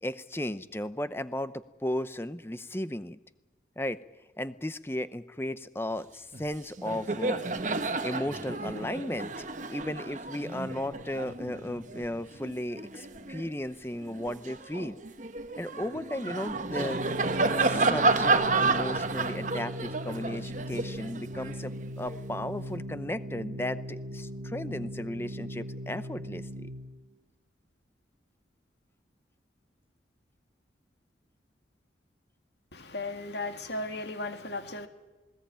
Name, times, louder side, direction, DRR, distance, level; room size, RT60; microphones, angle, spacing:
voice 1, 0.0-3.2 3.8-4.0 4.4-7.4 8.0-15.0 15.6-17.0 17.6-26.7, left 1 dB, 15° left, 14 dB, 0.7 m, -35 dB
Laughter, 6.3-6.5 6.8-13.5 14.0-22.2, right 3 dB, 40° right, 1.2 m, -31 dB
Organ, 16.3-27.1, equal, 85° right, 1.1 m, -39 dB
voice 2, 32.7-34.9, left 2 dB, 65° left, 7 dB, 2.3 m, -36 dB
20.0 x 18.5 x 8.8 m, 1.2 s
head